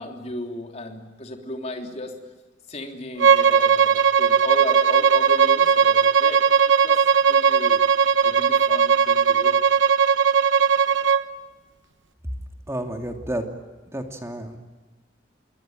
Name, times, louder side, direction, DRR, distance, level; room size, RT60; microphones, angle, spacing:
voice 1, 0.0-2.1 2.7-6.6 6.8-7.0 7.2-7.8 8.2-9.5, left 1 dB, 35° left, 3 dB, 3.4 m, -34 dB
Bowed string instrument, 3.2-11.2, right 7 dB, 85° right, 1.1 m, -18 dB
voice 2, 12.7-13.4 13.9-14.6, right 1 dB, 15° right, 4 dB, 2.6 m, -30 dB
27.5 x 22.5 x 9.1 m, 1.2 s
head